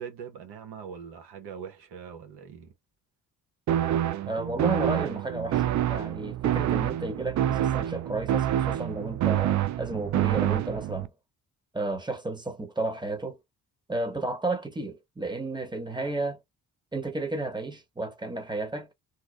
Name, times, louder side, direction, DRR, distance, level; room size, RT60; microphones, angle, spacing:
voice 1, 0.0-2.7, right 7 dB, 75° right, 1.1 m, -42 dB
sound 1, 3.7-11.1, right 12 dB, 50° right, 0.4 m, -27 dB
voice 2, 4.3-11.1 11.7-13.4 13.9-16.4 16.9-18.9, right 2 dB, 10° right, 1.1 m, -32 dB
2.9 x 2.2 x 2.2 m
supercardioid pair, 50°, 39 cm